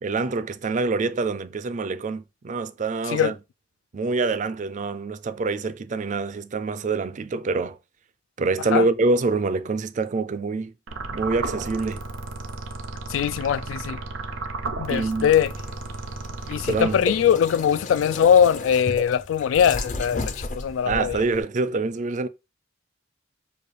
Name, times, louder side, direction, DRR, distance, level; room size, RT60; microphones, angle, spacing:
voice 1, 0.0-3.4 3.9-7.8 8.4-10.7 11.1-12.0 14.9-15.3 16.7-16.9 20.9-22.3, right 3 dB, 40° right, 0.4 m, -25 dB
sound 1, 10.9-17.4, right 3 dB, 80° right, 0.7 m, -34 dB
voice 2, 13.1-14.0 14.8-15.5 16.5-21.2, left 8 dB, 80° left, 0.3 m, -21 dB
sound 2, 15.2-21.4, left 2 dB, 40° left, 0.6 m, -33 dB
6.8 x 2.3 x 3.3 m
head